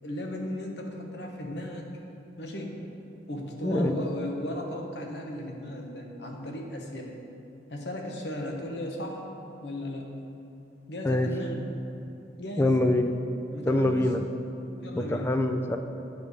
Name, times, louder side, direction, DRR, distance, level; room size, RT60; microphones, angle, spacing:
voice 1, 0.0-1.9 2.4-2.8 3.3-7.1 7.7-9.2 9.6-10.1 10.9-11.8 12.4-12.8 13.5-14.1 14.8-15.3, left 1 dB, 70° left, 1 dB, 1.1 m, -36 dB
voice 2, 3.6-3.9 11.0-11.3 12.6-13.1 13.7-14.2 15.0-15.8, left 1 dB, 15° left, 5 dB, 0.4 m, -24 dB
9.1 x 5.3 x 6.3 m, 2.8 s
head